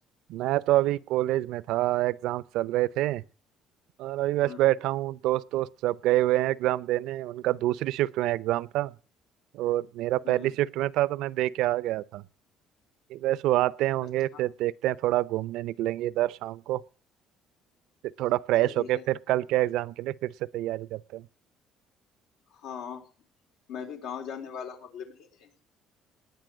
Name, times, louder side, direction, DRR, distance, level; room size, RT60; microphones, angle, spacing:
voice 1, 0.3-3.2 4.0-8.9 9.5-12.2 13.1-16.8 18.2-21.3, right 15 dB, 75° right, 0.6 m, -27 dB
voice 2, 18.6-19.0 22.6-23.0 23.7-25.5, left 7 dB, 80° left, 4.1 m, -39 dB
20.0 x 9.1 x 6.3 m
cardioid pair, 150°, 0 cm